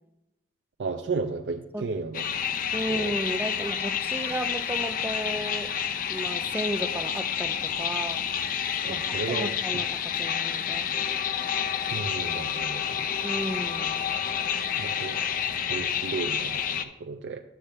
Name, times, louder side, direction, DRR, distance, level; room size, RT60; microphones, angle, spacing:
voice 1, 0.8-2.2 2.9-3.1 8.8-9.5 11.9-13.1 14.8-15.2 15.7-17.4, right 4 dB, 80° right, 6 dB, 0.4 m, -33 dB
sound 1, 2.1-16.8, left 8 dB, 50° left, 0.5 m, -29 dB
voice 2, 2.7-5.7 6.1-8.3 8.9-10.9 13.2-14.1, right 1 dB, 10° right, 7 dB, 0.5 m, -34 dB
9.8 x 3.3 x 6.7 m, 0.94 s
head